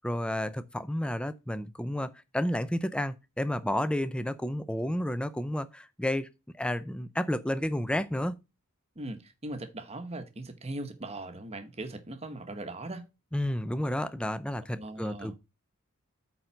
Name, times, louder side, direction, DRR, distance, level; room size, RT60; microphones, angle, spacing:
voice 1, 0.0-8.4 13.3-15.3, left 1 dB, 5° left, 0.4 m, -31 dB
voice 2, 9.0-13.1 14.8-15.3, right 2 dB, 30° right, 1.0 m, -39 dB
8.7 x 3.9 x 5.6 m
head